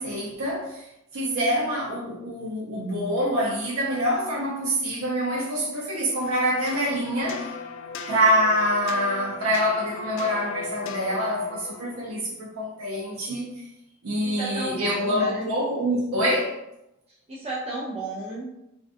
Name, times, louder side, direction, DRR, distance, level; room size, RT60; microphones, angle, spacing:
voice 1, 0.0-7.5 8.1-13.7 14.0-16.6, equal, 80° right, 0.6 m, -26 dB
sound 1, 6.2-12.1, left 5 dB, 65° left, 0.3 m, -38 dB
voice 2, 14.2-15.5 17.1-18.5, right 1 dB, 30° right, 0.5 m, -33 dB
3.6 x 2.3 x 2.5 m
head